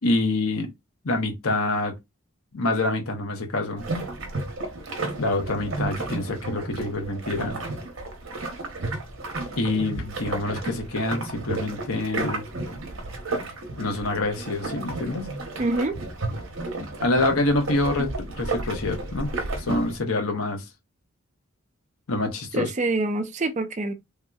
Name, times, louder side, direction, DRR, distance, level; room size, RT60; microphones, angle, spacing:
voice 1, 0.0-0.7 1.0-2.0 2.5-3.9 5.2-7.6 9.6-12.4 13.8-15.3 17.0-19.3 19.6-20.6 22.1-22.7, left 2 dB, 90° left, 1.0 m, -26 dB
sound 1, 3.8-20.0, right 2 dB, 60° right, 0.8 m, -32 dB
voice 2, 15.6-16.0 22.5-23.9, right 2 dB, 35° right, 0.4 m, -25 dB
3.4 x 2.8 x 2.3 m
head